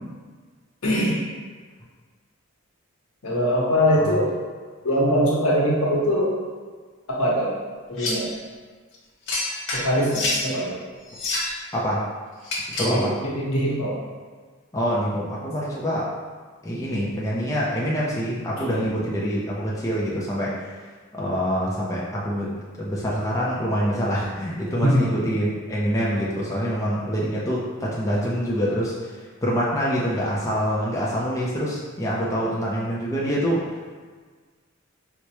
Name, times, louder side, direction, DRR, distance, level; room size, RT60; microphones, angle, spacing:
voice 1, 0.8-1.2 3.2-4.3 4.8-6.3 7.1-7.5 7.9-8.3 9.7-10.8 12.8-14.0 18.6-18.9 24.8-25.1, equal, 90° left, -5 dB, 1.0 m, -22 dB
sound 1, 8.0-8.3 9.3-10.5 11.1-11.6 12.4-13.0, left 2 dB, 55° left, 0.7 m, -27 dB
voice 2, 11.7-12.1 12.7-13.1 14.7-16.1 16.6-20.7 21.1-33.8, equal, 15° left, -6 dB, 0.4 m, -25 dB
4.6 x 2.1 x 2.9 m, 1.5 s
head